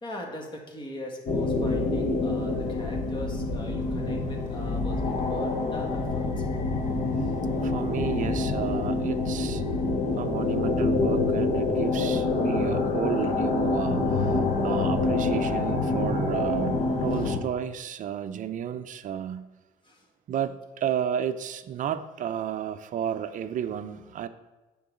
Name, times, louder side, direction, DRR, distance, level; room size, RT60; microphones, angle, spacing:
voice 1, 0.0-6.3 17.1-17.2 19.8-20.0, left 1 dB, 25° left, 1 dB, 1.7 m, -40 dB
sound 1, 1.3-17.4, left 3 dB, 45° left, 1.0 m, -26 dB
voice 2, 7.6-9.6 10.2-19.4 20.3-24.3, right 9 dB, 50° right, 12 dB, 0.5 m, -32 dB
9.5 x 3.9 x 6.2 m, 1.1 s
cardioid pair, 110°, 17 cm